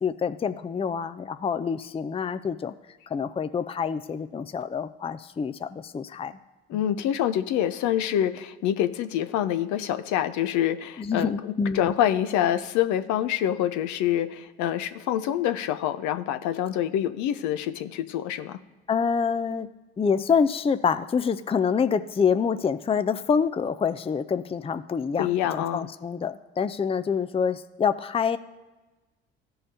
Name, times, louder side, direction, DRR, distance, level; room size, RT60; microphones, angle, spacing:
voice 1, 0.0-2.7 3.1-6.4 6.7-6.8 11.0-11.9 18.9-19.7 20.0-25.3 25.5-28.4, left 6 dB, 20° left, 11 dB, 0.5 m, -26 dB
voice 2, 6.7-18.6 25.2-25.9, left 11 dB, 65° left, 10 dB, 0.7 m, -26 dB
16.0 x 5.6 x 2.8 m, 1.1 s
hypercardioid pair, 50°, 31 cm